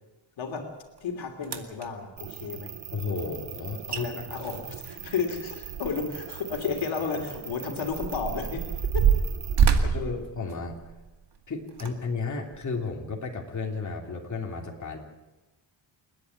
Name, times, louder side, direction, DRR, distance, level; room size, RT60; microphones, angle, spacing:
voice 1, 0.4-0.7 1.0-2.8 3.9-9.1 9.8-10.2, left 5 dB, 80° left, 4 dB, 3.0 m, -33 dB
sound 1, 1.0-1.1 1.4-1.9 3.6-3.7 3.9-4.0 4.4-6.2 6.5-6.6 7.3-11.1 11.7-11.9 12.5-12.6, right 7 dB, 60° right, 2.2 m, -26 dB
sound 2, 2.2-9.6, right 11 dB, 80° right, 1.3 m, -41 dB
voice 2, 2.9-4.2 9.8-10.9 11.5-15.0, left 4 dB, 40° left, 1 dB, 3.1 m, -33 dB
28.5 x 10.0 x 9.7 m, 1.1 s
cardioid pair, 100°, 45 cm